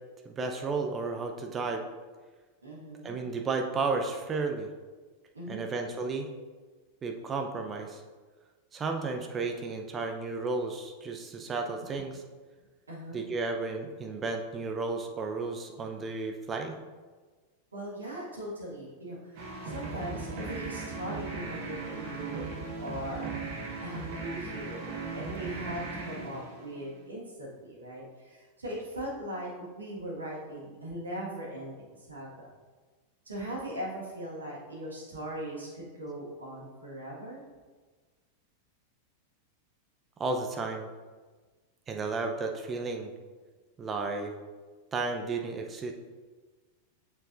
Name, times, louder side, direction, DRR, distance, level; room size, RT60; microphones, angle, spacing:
voice 1, 0.2-1.8 3.0-4.7 5.5-6.3 7.0-8.0 8.7-12.1 13.1-16.8 40.2-40.9 41.9-43.1 43.8-44.3 44.9-45.9, right 3 dB, 20° right, 4 dB, 0.7 m, -33 dB
voice 2, 2.6-3.2 5.3-5.6 12.9-13.2 17.7-23.5 23.8-32.5 33.3-37.4, right 1 dB, 75° right, -5 dB, 1.8 m, -40 dB
sound 1, 19.3-27.1, right 4 dB, 50° right, 1.1 m, -38 dB
6.9 x 5.8 x 2.6 m, 1.4 s
figure-of-eight pair, 90°, 0 cm